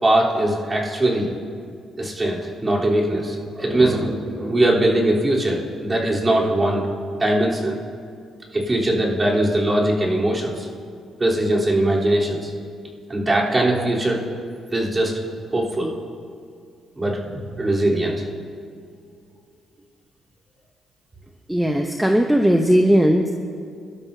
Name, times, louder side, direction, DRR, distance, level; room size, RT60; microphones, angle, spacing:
voice 1, 0.0-1.3 2.0-6.9 7.2-7.8 8.5-10.7 11.2-12.5 13.1-14.2 14.7-15.2 15.5-15.9 17.0-18.2, right 1 dB, 25° right, -5 dB, 3.5 m, -21 dB
voice 2, 21.5-23.3, equal, 5° right, 3 dB, 0.8 m, -17 dB
23.5 x 12.5 x 2.8 m, 2.3 s
cardioid pair, 90°, 0 cm